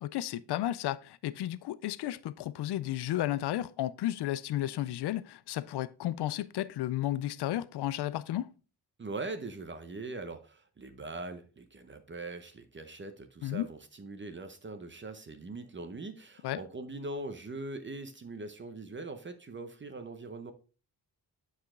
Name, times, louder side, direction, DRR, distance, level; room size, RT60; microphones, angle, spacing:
voice 1, 0.0-8.5 13.4-13.7 16.4-16.6, left 13 dB, 75° left, 0.5 m, -33 dB
voice 2, 9.0-20.5, right 2 dB, 30° right, 0.8 m, -41 dB
8.3 x 5.0 x 3.7 m
wide cardioid pair, 125°, 40 cm